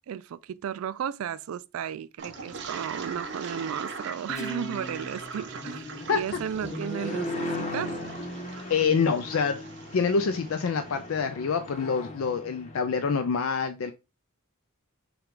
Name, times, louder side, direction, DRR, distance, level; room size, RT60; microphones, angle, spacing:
voice 1, 0.1-7.9, right 8 dB, 80° right, 0.3 m, -34 dB
Toilet flush, 2.2-10.8, right 5 dB, 55° right, 0.8 m, -42 dB
sound 1, 2.3-13.4, left 1 dB, 30° left, 0.9 m, -38 dB
Guitar, 4.3-7.5, right 1 dB, 15° left, 0.5 m, -42 dB
voice 2, 8.7-9.7 9.9-13.9, left 5 dB, 75° left, 0.4 m, -26 dB
5.7 x 2.3 x 3.7 m
head